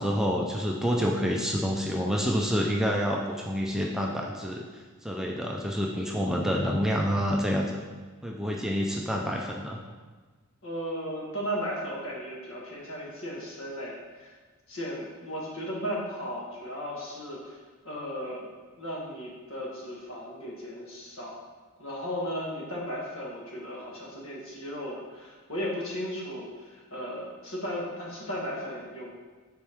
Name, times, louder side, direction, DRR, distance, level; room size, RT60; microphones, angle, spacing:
voice 1, 0.0-4.6 5.0-7.8 8.2-9.8, equal, ahead, -1 dB, 0.4 m, -28 dB
voice 2, 10.6-14.3 14.7-17.6 17.8-18.5 18.8-21.3 21.8-29.1, equal, 65° left, -3 dB, 1.4 m, -35 dB
7.0 x 4.5 x 3.5 m, 1.4 s
head